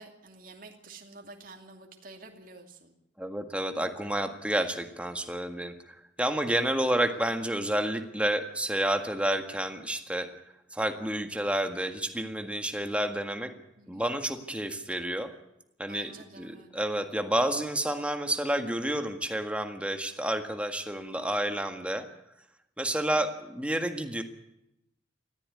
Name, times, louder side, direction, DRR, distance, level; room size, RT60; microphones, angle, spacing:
voice 1, 0.0-2.9 6.9-7.3 13.8-14.1 15.9-16.7 22.9-23.2, right 3 dB, 45° right, 3 dB, 2.6 m, -50 dB
voice 2, 3.2-5.7 6.2-10.3 10.7-13.5 13.9-15.3 15.8-16.1 16.4-22.1 22.8-24.2, right 1 dB, 5° right, 6 dB, 1.7 m, -30 dB
19.0 x 14.5 x 9.7 m, 0.85 s
head